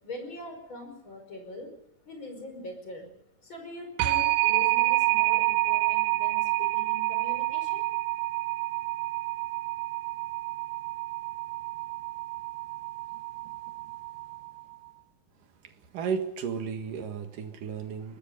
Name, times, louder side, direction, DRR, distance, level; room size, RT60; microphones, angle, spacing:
voice 1, 0.0-1.7 2.0-3.1 3.4-7.9, left 1 dB, 35° left, 4 dB, 6.0 m, -42 dB
sound 1, 4.0-14.6, right 19 dB, 90° right, 2.8 m, -28 dB
voice 2, 15.6-18.2, right 6 dB, 70° right, 6 dB, 3.3 m, -34 dB
24.5 x 20.0 x 5.5 m, 0.80 s
omnidirectional pair, 3.9 m